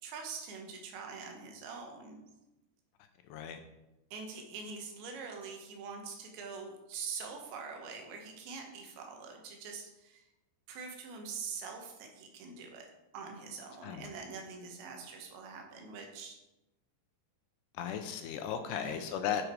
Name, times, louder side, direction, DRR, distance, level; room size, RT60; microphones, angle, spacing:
voice 1, 0.0-2.2 4.1-10.2 10.7-12.9 13.1-16.4 18.7-19.0, right 5 dB, 75° right, 3 dB, 3.7 m, -44 dB
voice 2, 3.2-3.6 13.8-14.1 17.7-19.5, left 8 dB, 80° left, 7 dB, 2.7 m, -36 dB
10.0 x 8.8 x 4.7 m, 0.95 s
omnidirectional pair, 5.2 m